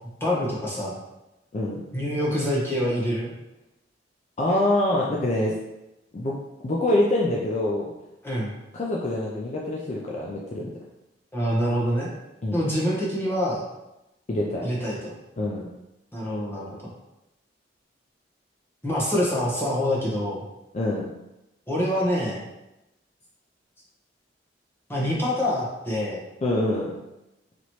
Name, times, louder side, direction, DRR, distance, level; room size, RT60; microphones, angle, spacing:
voice 1, 0.2-1.0 1.9-3.3 8.2-8.5 11.3-12.1 12.5-13.7 14.6-15.1 16.1-16.9 18.8-20.4 21.7-22.4 24.9-26.2, equal, 15° left, -5 dB, 1.0 m, -26 dB
voice 2, 4.4-5.6 6.1-6.3 6.6-7.9 8.7-10.7 12.4-12.7 14.3-14.7 15.4-15.7 20.7-21.1 26.4-26.9, left 1 dB, 40° left, -3 dB, 0.4 m, -25 dB
4.1 x 3.0 x 3.0 m, 0.94 s
head